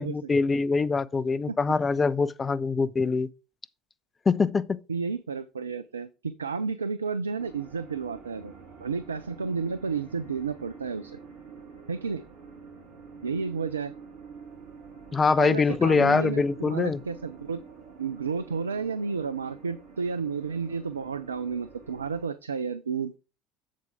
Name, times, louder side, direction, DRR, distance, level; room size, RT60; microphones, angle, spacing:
voice 1, 0.0-3.3 4.3-4.8 15.1-17.0, left 4 dB, 25° left, 0.6 m, -24 dB
voice 2, 4.9-8.5 8.8-11.2 11.9-12.3 13.2-13.9 15.4-17.6 18.0-23.2, right 5 dB, 80° right, 0.4 m, -31 dB
sound 1, 7.4-22.2, right 5 dB, 60° right, 2.5 m, -47 dB
7.5 x 7.3 x 3.6 m
figure-of-eight pair, 65°, 0 cm